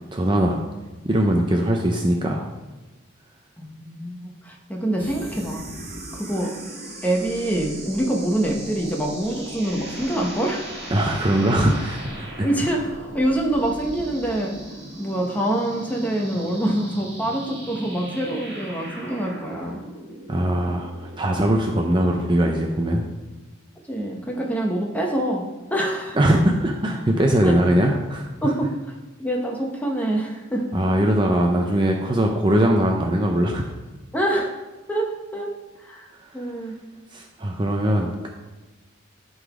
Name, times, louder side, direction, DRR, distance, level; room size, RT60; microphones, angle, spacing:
voice 1, 0.1-0.6 1.0-2.4 10.9-12.5 20.3-23.1 26.1-28.3 30.7-33.7 36.2-36.5 37.1-38.3, right 1 dB, 25° right, 1 dB, 0.6 m, -21 dB
voice 2, 3.6-5.7 6.1-6.6 7.0-10.9 12.4-14.6 15.0-19.8 23.9-26.2 27.4-27.5 28.4-28.7 29.2-30.7 34.1-34.6 34.9-35.5 35.8-36.7, right 1 dB, 10° left, 0 dB, 1.0 m, -25 dB
sound 1, 5.0-21.8, right 1 dB, 50° right, 2.8 m, -38 dB
11.0 x 4.0 x 4.9 m, 1.2 s
head